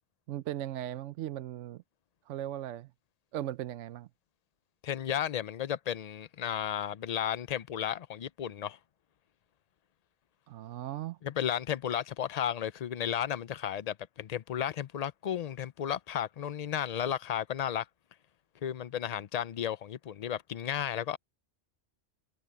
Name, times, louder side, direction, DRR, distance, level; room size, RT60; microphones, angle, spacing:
voice 1, 0.3-1.8 2.3-2.9 3.3-4.1 10.5-11.2, right 12 dB, 75° right, 0.9 m, -37 dB
voice 2, 4.8-8.8 11.2-17.9 18.6-21.2, left 9 dB, 70° left, 0.3 m, -33 dB
omnidirectional pair, 1.3 m